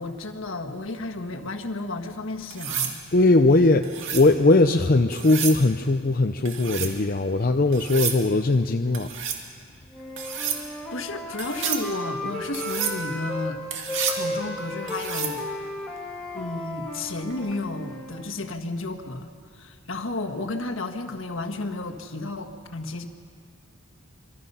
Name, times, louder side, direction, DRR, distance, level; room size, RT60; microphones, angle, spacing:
voice 1, 0.0-3.0 10.9-13.6 14.1-15.4 16.3-23.1, left 2 dB, 70° left, 4 dB, 1.6 m, -32 dB
sound 1, 2.5-3.0 3.8-4.3 5.1-5.6 6.5-6.9 7.7-8.2 8.9-9.4 10.2-10.6 11.4-11.8 12.5-13.0 13.7-14.2 14.9-15.4 17.3-17.6, right 8 dB, 65° right, 2.4 m, -30 dB
voice 2, 3.1-9.1, left 2 dB, 45° left, 6 dB, 0.6 m, -20 dB
Wind instrument woodwind instrument, 9.9-13.5 13.9-18.1, left 1 dB, 5° left, 2.1 m, -34 dB
26.5 x 24.0 x 5.7 m, 2.1 s
head